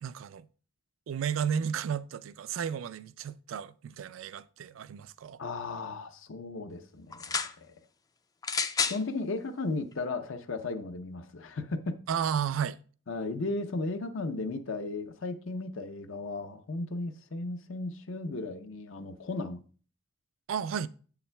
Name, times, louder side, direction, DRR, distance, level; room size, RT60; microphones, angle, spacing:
voice 1, 0.0-0.5 1.1-5.4 12.1-12.8 20.5-20.9, right 7 dB, 80° right, 0.3 m, -33 dB
voice 2, 5.4-7.2 7.6-7.7 8.8-12.0 13.1-19.6, left 3 dB, 75° left, 0.7 m, -35 dB
sound 1, 7.1-7.6 8.4-9.0 9.9-10.0, left 5 dB, 20° left, 0.3 m, -30 dB
7.6 x 7.0 x 2.2 m
head